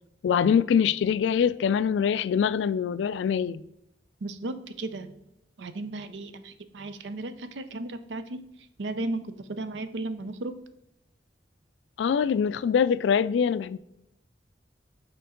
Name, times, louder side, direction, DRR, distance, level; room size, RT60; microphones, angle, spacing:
voice 1, 0.2-3.6 12.0-13.8, left 7 dB, 90° left, 0.3 m, -24 dB
voice 2, 4.2-5.1 5.6-8.4 8.8-10.5, right 2 dB, 90° right, 0.6 m, -35 dB
6.8 x 4.4 x 3.7 m
head